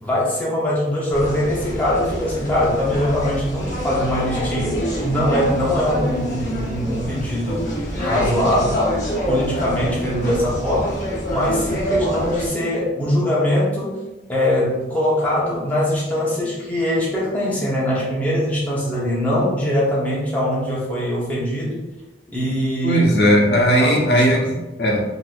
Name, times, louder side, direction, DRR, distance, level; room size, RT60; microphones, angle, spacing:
voice 1, 0.0-7.7 8.0-8.8 9.3-11.0 11.3-14.0 14.3-21.8 22.3-23.1 23.8-24.4, left 1 dB, 10° left, -7 dB, 0.8 m, -22 dB
sound 1, 1.1-12.5, equal, 45° left, 1.1 m, -26 dB
voice 2, 22.8-25.0, equal, 70° left, -2 dB, 0.7 m, -17 dB
3.9 x 2.6 x 2.3 m, 1.0 s
head